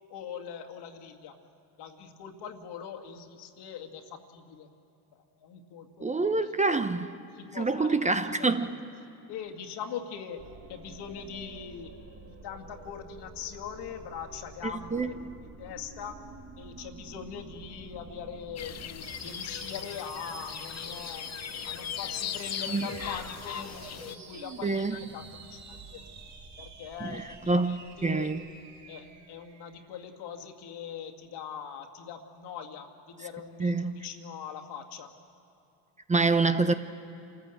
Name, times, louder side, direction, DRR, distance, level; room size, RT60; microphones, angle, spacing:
voice 1, 0.1-1.4 1.8-4.7 5.1-6.8 7.3-11.9 12.3-15.2 15.6-16.2 16.6-21.3 21.6-26.0 26.6-28.4 28.9-35.1, left 7 dB, 60° left, 2.1 m, -42 dB
voice 2, 6.0-7.1 7.5-8.7 14.6-15.1 22.7-22.9 24.6-25.0 27.0-27.1 27.5-27.8 28.0-28.4 33.6-34.0 36.1-36.7, right 3 dB, 15° right, 0.8 m, -26 dB
sound 1, 10.4-29.7, right 3 dB, 35° right, 2.4 m, -48 dB
sound 2, 18.6-24.2, left 9 dB, 35° left, 0.8 m, -38 dB
27.5 x 14.5 x 7.9 m
supercardioid pair, 85°, 44 cm